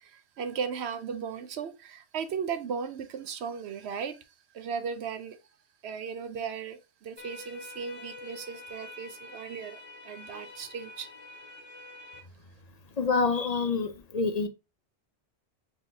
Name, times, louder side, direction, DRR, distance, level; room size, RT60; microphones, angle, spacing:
voice 1, 0.0-4.2 4.5-5.4 5.8-11.1, right 6 dB, 70° right, 0.9 m, -36 dB
sound 1, 7.2-12.2, left 2 dB, 30° left, 1.2 m, -46 dB
voice 2, 13.0-14.5, left 4 dB, 50° left, 0.5 m, -27 dB
4.5 x 3.7 x 2.7 m
omnidirectional pair, 1.2 m